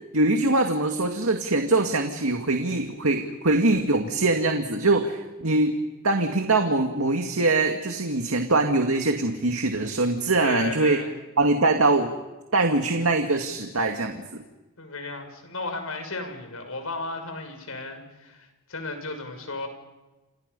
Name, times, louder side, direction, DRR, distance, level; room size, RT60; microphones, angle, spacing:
voice 1, 0.1-5.8 6.0-11.0 11.4-12.1 12.5-14.2, right 2 dB, 90° right, 4 dB, 2.2 m, -23 dB
voice 2, 10.4-11.1 14.8-19.7, left 3 dB, 85° left, 6 dB, 6.4 m, -34 dB
30.0 x 28.5 x 5.5 m, 1.1 s
head